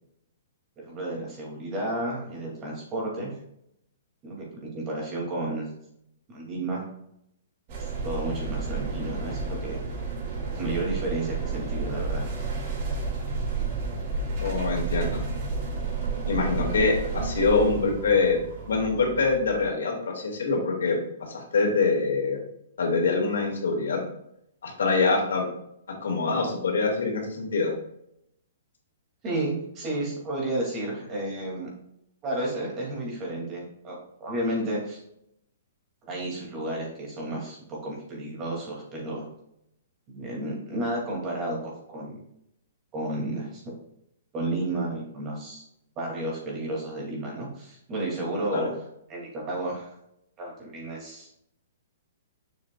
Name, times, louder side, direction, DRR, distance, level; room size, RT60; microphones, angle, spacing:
voice 1, 0.9-3.3 4.2-5.7 6.3-6.8 7.8-9.8 10.5-12.3 29.2-31.7 32.2-35.0 36.1-39.2 40.1-42.2 42.9-43.6 44.3-45.6 46.0-48.7 49.1-49.9 50.4-51.4, right 1 dB, 25° right, -2 dB, 2.7 m, -32 dB
sound 1, 7.7-19.7, right 4 dB, 40° right, 2.4 m, -31 dB
voice 2, 14.4-15.2 16.3-18.4 18.7-22.4 22.8-24.0 24.6-25.5 26.0-27.7 48.5-48.7, left 4 dB, 85° left, 1 dB, 2.2 m, -24 dB
7.0 x 6.5 x 2.4 m, 0.76 s
hypercardioid pair, 155°, 0 cm